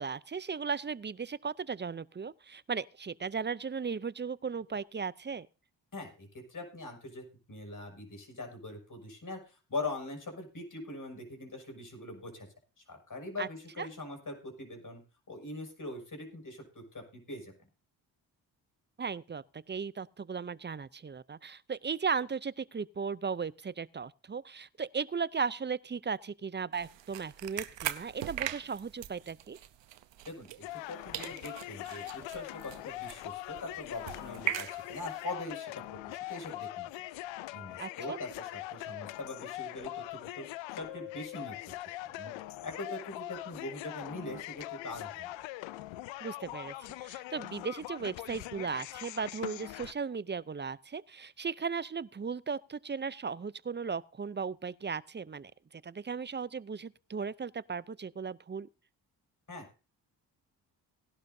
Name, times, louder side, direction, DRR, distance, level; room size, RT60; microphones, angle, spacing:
voice 1, 0.0-5.5 13.4-13.5 13.8-13.9 19.0-29.6 37.8-38.2 46.2-46.7 47.0-58.7, right 5 dB, 25° right, 0.6 m, -36 dB
voice 2, 5.9-12.5 12.8-15.0 15.3-17.5 30.2-36.9 37.5-40.5 40.7-41.7 42.1-42.3 42.6-45.4 59.5-59.7, left 2 dB, 45° left, 6.5 m, -42 dB
sound 1, 26.7-30.9 31.1-35.2, right 13 dB, 75° right, 0.9 m, -41 dB
sound 2, 30.6-49.9, left 16 dB, 90° left, 0.6 m, -42 dB
18.5 x 11.5 x 2.7 m
supercardioid pair, 50°, 44 cm